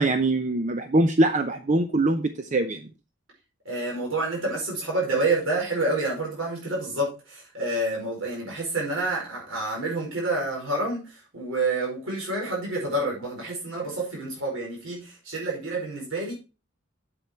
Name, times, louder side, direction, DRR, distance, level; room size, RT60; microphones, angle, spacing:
voice 1, 0.0-2.9, right 2 dB, 35° right, 0.6 m, -23 dB
voice 2, 3.6-16.3, right 2 dB, 90° right, 4.9 m, -28 dB
8.3 x 7.7 x 4.4 m
head